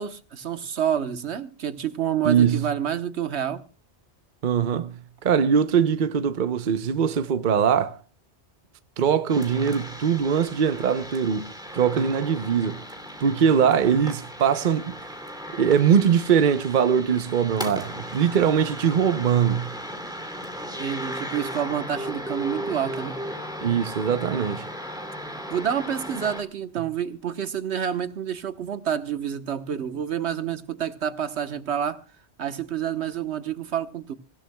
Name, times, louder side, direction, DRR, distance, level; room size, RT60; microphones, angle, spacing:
voice 1, 0.0-3.6 20.8-23.2 25.5-32.0 32.4-34.1, right 9 dB, 90° right, 1.4 m, -28 dB
voice 2, 2.2-2.7 4.4-8.0 9.0-12.8 13.2-15.0 15.5-19.8 23.6-24.7, right 7 dB, 50° right, 0.9 m, -22 dB
sound 1, 9.3-26.4, equal, 5° right, 2.7 m, -36 dB
24.5 x 15.5 x 2.3 m
omnidirectional pair, 1.1 m